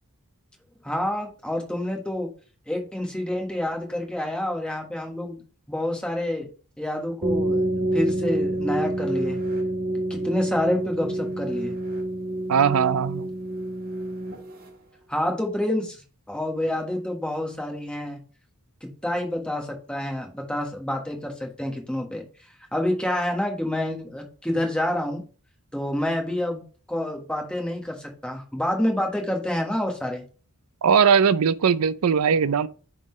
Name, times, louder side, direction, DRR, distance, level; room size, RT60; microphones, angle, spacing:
voice 1, 0.8-2.3 2.7-5.4 5.7-6.5 6.8-7.6 7.9-9.4 10.1-11.8 15.1-16.0 16.3-18.2 18.8-22.2 22.7-25.2 25.7-26.6 26.9-30.2, left 1 dB, 5° left, 1.4 m, -28 dB
sound 1, 7.2-14.7, right 1 dB, 40° right, 1.6 m, -27 dB
voice 2, 12.5-13.3 30.8-32.7, right 6 dB, 70° right, 0.5 m, -20 dB
10.0 x 3.9 x 3.1 m
head